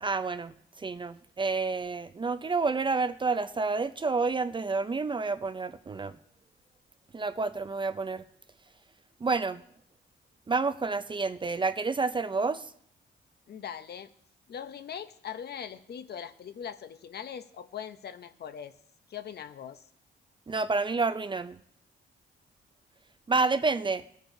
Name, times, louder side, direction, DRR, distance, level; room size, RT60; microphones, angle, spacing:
voice 1, 0.0-6.2 7.1-8.2 9.2-9.6 10.5-12.7 20.5-21.6 23.3-24.0, right 4 dB, 25° right, 12 dB, 0.4 m, -29 dB
voice 2, 13.5-14.1 14.5-18.7 19.1-19.8, left 8 dB, 55° left, 10 dB, 0.7 m, -41 dB
19.5 x 9.2 x 2.7 m, 0.65 s
cardioid pair, 115°, 20 cm